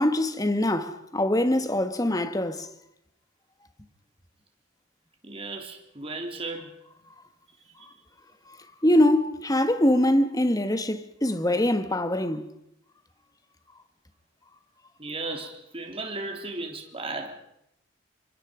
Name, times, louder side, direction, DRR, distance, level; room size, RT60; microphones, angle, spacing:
voice 1, 0.0-2.7 8.5-8.6 8.8-12.5, left 1 dB, 20° left, 1.6 m, -23 dB
voice 2, 5.2-6.7 15.0-17.4, right 2 dB, 30° right, 3.4 m, -35 dB
26.0 x 24.0 x 5.2 m
head